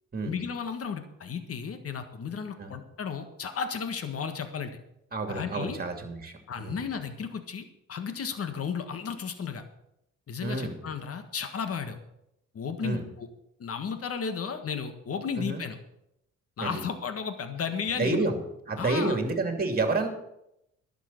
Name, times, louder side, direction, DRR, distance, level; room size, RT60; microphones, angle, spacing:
voice 1, 0.2-4.8 5.3-5.8 6.5-9.6 10.3-12.0 12.5-13.3 13.6-15.8 16.6-18.3 18.8-19.2, left 6 dB, 50° left, 8 dB, 1.6 m, -34 dB
voice 2, 5.1-6.8 10.4-10.7 12.8-13.0 15.4-15.6 16.6-16.7 18.0-18.4 18.7-20.1, right 3 dB, 30° right, 5 dB, 2.7 m, -29 dB
11.5 x 7.0 x 8.4 m, 0.83 s
cardioid pair, 90°, 30 cm